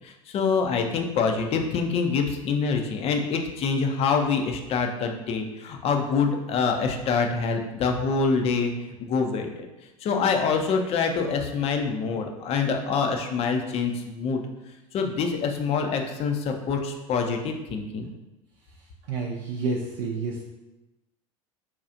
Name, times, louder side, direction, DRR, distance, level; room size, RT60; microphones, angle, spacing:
voice 1, 0.0-8.7 9.0-9.7 10.0-14.4 14.9-18.1, left 5 dB, 35° left, 3 dB, 0.5 m, -25 dB
voice 2, 19.1-20.4, right 4 dB, 55° right, -1 dB, 0.5 m, -29 dB
5.7 x 2.3 x 2.6 m, 1.0 s
figure-of-eight pair, 70°, 18 cm